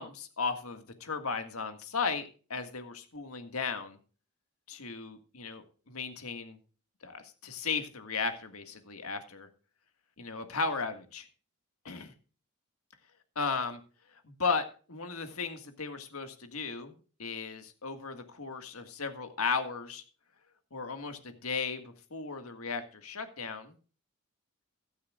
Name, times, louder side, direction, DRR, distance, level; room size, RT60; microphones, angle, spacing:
voice 1, 0.0-4.0 4.7-6.6 7.0-9.5 10.2-11.3 11.9-12.1 13.4-13.8 14.2-16.9 17.2-20.0 20.7-23.8, left 5 dB, 85° left, 7 dB, 1.8 m, -35 dB
15.5 x 12.5 x 2.4 m, 0.37 s
head